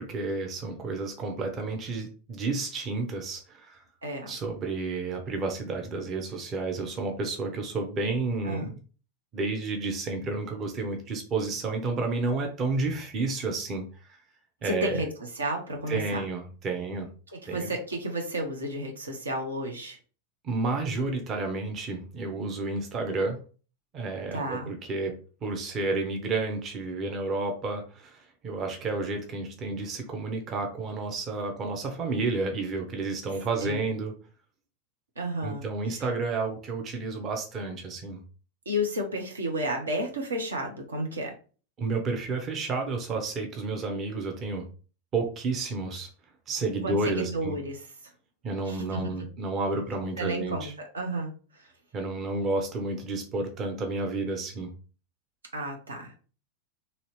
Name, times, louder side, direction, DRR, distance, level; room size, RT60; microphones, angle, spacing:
voice 1, 0.0-3.8 4.3-8.8 9.3-13.9 14.6-15.0 15.9-17.1 17.5-17.7 20.4-23.4 23.9-25.1 25.4-34.1 35.4-38.2 41.8-44.7 45.1-46.1 46.5-47.6 48.4-50.7 51.9-54.7, right 3 dB, 30° right, 3 dB, 0.8 m, -31 dB
voice 2, 4.0-4.3 8.4-8.7 14.6-15.1 15.3-16.2 17.3-20.0 24.3-24.7 33.6-33.9 35.2-35.6 38.7-41.3 46.8-47.8 48.7-49.3 50.2-51.3 55.5-56.2, equal, 75° right, 1 dB, 0.8 m, -32 dB
2.9 x 2.8 x 3.1 m, 0.37 s
figure-of-eight pair, 90°, 0 cm